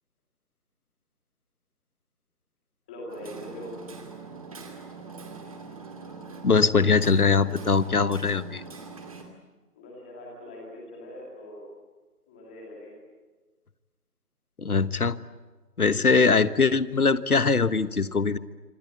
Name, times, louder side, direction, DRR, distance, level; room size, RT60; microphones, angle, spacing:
voice 1, 2.9-3.7 9.7-11.7 12.3-13.0, left 1 dB, 5° left, -2 dB, 2.2 m, -42 dB
Hammer, 3.1-9.2, right 4 dB, 20° right, 2.6 m, -42 dB
voice 2, 6.4-8.6 14.6-15.2 15.8-18.4, left 4 dB, 70° left, 15 dB, 1.4 m, -22 dB
26.5 x 26.5 x 8.5 m, 1.3 s
figure-of-eight pair, 170°, 47 cm